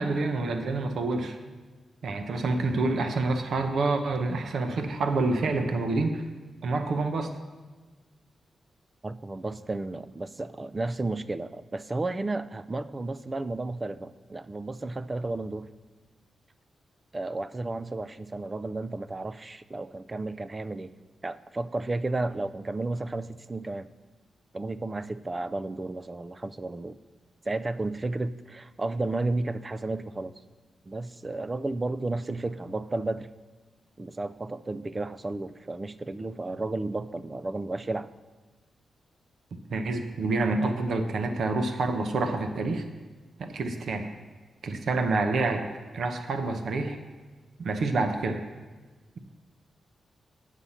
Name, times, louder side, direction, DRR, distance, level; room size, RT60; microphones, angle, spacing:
voice 1, 0.0-1.4 2.0-6.2 6.6-7.3 39.7-42.8 43.4-44.1 44.6-45.6 45.9-47.0 47.6-48.4, right 3 dB, 65° right, 6 dB, 0.8 m, -27 dB
voice 2, 9.0-15.7 17.1-20.9 21.2-23.9 24.5-27.0 27.4-30.3 30.8-33.3 34.0-38.1, right 2 dB, 25° right, 14 dB, 0.3 m, -33 dB
8.2 x 5.6 x 7.1 m, 1.3 s
wide cardioid pair, 120°, 0 cm